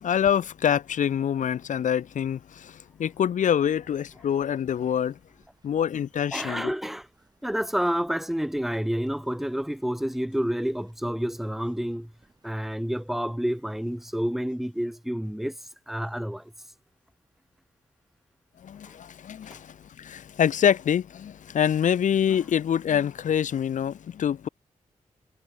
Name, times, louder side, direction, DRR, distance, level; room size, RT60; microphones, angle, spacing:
voice 1, 0.0-5.2 5.6-6.7 18.6-24.5, left 9 dB, 65° left, 0.4 m, -25 dB
sound 1, 3.4-14.2, right 2 dB, 30° right, 5.7 m, -65 dB
voice 2, 6.3-7.1 7.4-12.1 12.4-15.6 15.9-16.5 19.5-19.6, equal, ahead, 0.8 m, -29 dB
supercardioid pair, 45°, 14 cm